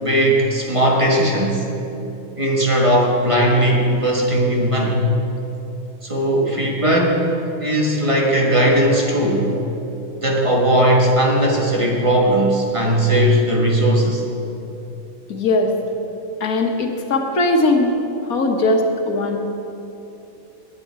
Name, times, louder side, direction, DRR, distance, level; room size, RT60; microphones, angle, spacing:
voice 1, 0.0-1.7 2.4-5.0 6.0-9.5 10.2-14.2, right 1 dB, 25° right, -1 dB, 1.6 m, -18 dB
voice 2, 15.3-15.7 16.4-18.0 18.3-19.4, left 2 dB, 90° left, 3 dB, 1.7 m, -19 dB
18.5 x 9.2 x 4.7 m, 3.0 s
omnidirectional pair, 1.5 m